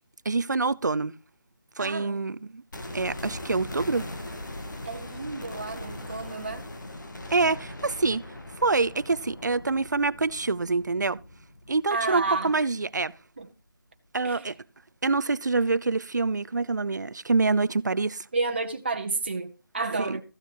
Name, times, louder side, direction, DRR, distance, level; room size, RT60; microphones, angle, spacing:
voice 1, 0.2-1.1 1.8-2.6 2.9-4.1 7.3-11.2 11.7-13.1 14.1-14.6 15.0-18.3 20.0-20.2, right 3 dB, 55° right, 0.6 m, -26 dB
voice 2, 1.8-2.2 4.8-6.6 11.9-12.5 13.4-13.5 14.2-14.5 18.3-20.2, right 3 dB, 30° right, 1.2 m, -31 dB
sound 1, 2.7-12.7 13.0-13.1, left 1 dB, 55° left, 2.7 m, -40 dB
14.5 x 7.3 x 5.4 m
figure-of-eight pair, 175°, 12 cm